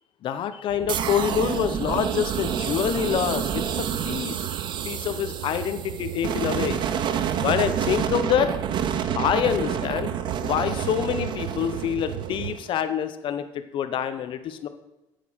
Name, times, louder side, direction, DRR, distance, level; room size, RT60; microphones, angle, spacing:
voice 1, 0.2-4.5 4.8-6.8 7.4-8.5 9.1-10.1 10.4-14.7, left 9 dB, 55° left, 10 dB, 0.9 m, -26 dB
sound 1, 0.7-12.6, right 14 dB, 85° right, 0.5 m, -36 dB
sound 2, 0.9-12.7, right 8 dB, 50° right, 0.8 m, -29 dB
8.6 x 7.6 x 5.7 m, 0.98 s
cardioid pair, 120°, 10 cm